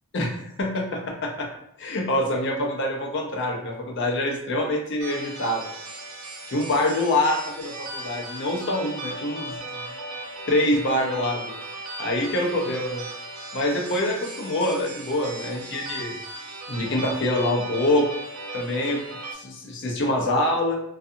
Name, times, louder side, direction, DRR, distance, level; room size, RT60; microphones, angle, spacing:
voice 1, 0.6-1.5 1.8-5.6 6.5-9.6 10.5-13.0 13.5-16.1 16.7-18.1 18.5-19.0 19.3-20.7, left 1 dB, 55° left, 0 dB, 0.5 m, -25 dB
sound 1, 5.0-19.3, right 2 dB, 85° right, 0.5 m, -37 dB
2.6 x 2.4 x 2.4 m, 0.78 s
head